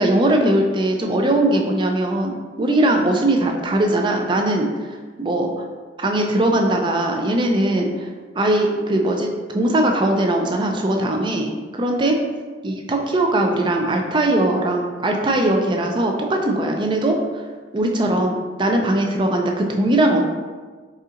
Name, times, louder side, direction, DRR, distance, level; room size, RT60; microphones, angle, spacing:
voice 1, 0.0-5.5 6.0-8.1 8.3-12.2 12.6-17.4 17.7-20.2, right 1 dB, 25° right, 2 dB, 0.4 m, -20 dB
4.2 x 3.7 x 2.4 m, 1.4 s
head